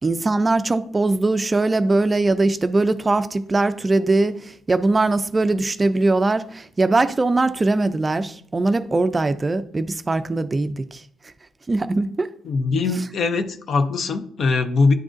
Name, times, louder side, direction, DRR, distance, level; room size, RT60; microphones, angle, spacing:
voice 1, 0.0-11.0 11.7-12.3, right 2 dB, 25° right, 0.3 m, -21 dB
voice 2, 12.4-14.9, left 4 dB, 60° left, 0.6 m, -21 dB
10.0 x 3.6 x 2.6 m
cardioid pair, 90°, 0 cm